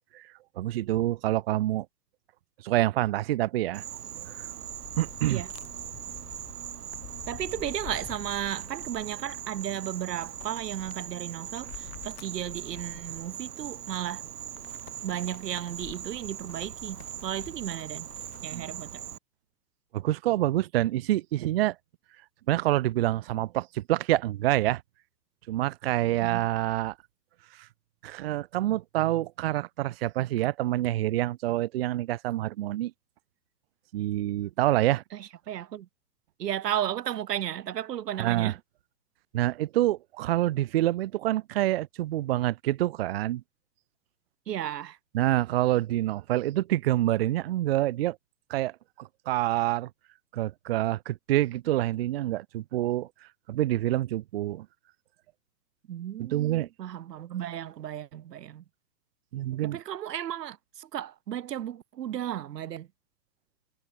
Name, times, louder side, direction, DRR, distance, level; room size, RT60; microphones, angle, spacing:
voice 1, 0.6-1.9 2.6-3.8 4.3-4.5 5.0-5.4 18.5-18.7 19.9-21.8 22.5-24.8 25.5-26.9 28.0-32.9 33.9-35.0 38.2-38.5 39.3-43.4 45.1-48.2 48.5-48.7 49.0-49.9 50.3-53.1 53.5-54.7 56.2-56.7 59.3-59.8, right 15 dB, 40° right, 0.5 m, -27 dB
Insect, 3.7-19.2, right 10 dB, 70° right, 3.0 m, -40 dB
sound 1, 4.6-18.7, left 22 dB, 30° left, 7.5 m, -50 dB
voice 2, 7.3-14.2 15.0-18.1 18.4-19.0 26.2-26.5 35.1-35.9 36.4-38.6 44.5-45.0 55.9-58.6 59.6-62.9, right 11 dB, 85° right, 0.8 m, -34 dB
hypercardioid pair, 135°, 48 cm